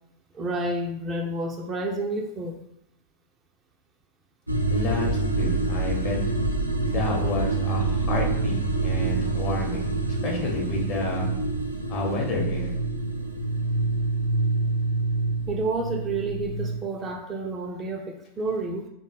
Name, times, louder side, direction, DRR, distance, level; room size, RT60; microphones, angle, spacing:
voice 1, 0.3-2.6 15.5-18.9, right 2 dB, 25° right, 2 dB, 0.4 m, -30 dB
sound 1, 4.5-16.8, right 2 dB, 90° right, 0.4 m, -26 dB
voice 2, 4.7-6.2 6.8-11.3 11.9-12.7, left 1 dB, 35° left, -1 dB, 0.9 m, -30 dB
3.5 x 2.0 x 3.9 m, 0.79 s
figure-of-eight pair, 90°, 0 cm